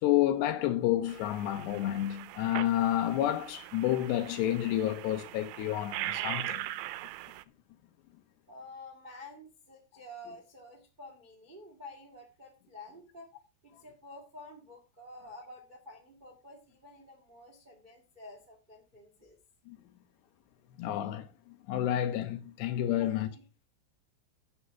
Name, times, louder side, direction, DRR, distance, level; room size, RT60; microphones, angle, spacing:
voice 1, 0.0-6.6 19.7-19.8 20.8-23.3, left 12 dB, 75° left, 2.9 m, -30 dB
sound 1, 1.1-7.4, right 16 dB, 80° right, 2.6 m, -40 dB
voice 2, 8.5-13.3 13.6-19.4 23.0-23.4, left 1 dB, 40° right, 0.6 m, -50 dB
11.0 x 5.6 x 5.6 m
omnidirectional pair, 5.3 m